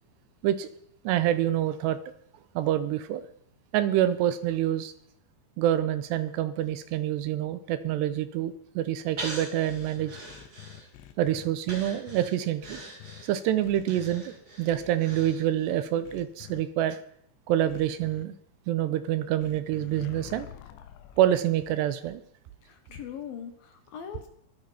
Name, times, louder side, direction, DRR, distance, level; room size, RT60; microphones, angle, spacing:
voice 1, 1.0-2.0 2.6-3.2 3.7-4.9 5.6-10.1 11.2-12.8 13.2-17.0 17.5-18.3 18.7-20.5 21.2-22.2, right 12 dB, 80° right, 12 dB, 2.7 m, -27 dB
Breathing, 9.2-11.1 11.6-15.8 16.2-16.3, right 2 dB, 25° right, 2.7 m, -42 dB
sound 1, 9.7-12.3 12.6-13.2 13.6-14.2 14.7-15.3 16.0-16.6 17.7-18.2 19.4-21.4, left 12 dB, 85° left, 3.3 m, -47 dB
voice 2, 22.6-24.3, left 8 dB, 65° left, 7 dB, 2.7 m, -41 dB
22.0 x 9.1 x 5.7 m, 0.70 s
omnidirectional pair, 5.2 m